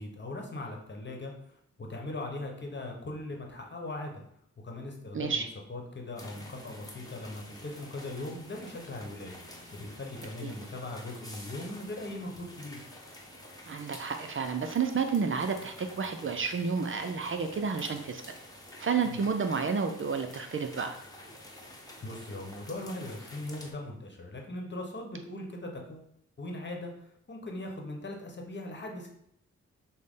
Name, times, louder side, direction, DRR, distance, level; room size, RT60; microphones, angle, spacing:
voice 1, 0.0-1.3 1.8-4.2 4.6-5.4 5.7-9.3 9.7-12.8 19.0-19.2 22.0-26.1 26.4-26.9 27.3-29.1, left 2 dB, 35° left, 1 dB, 1.1 m, -39 dB
voice 2, 5.1-5.5 10.4-10.5 13.7-18.2 18.8-21.0, right 5 dB, 45° right, 6 dB, 0.5 m, -30 dB
sound 1, 6.2-23.7, left 1 dB, 10° left, 1.1 m, -49 dB
6.1 x 2.1 x 3.7 m, 0.72 s
cardioid pair, 55°, 30 cm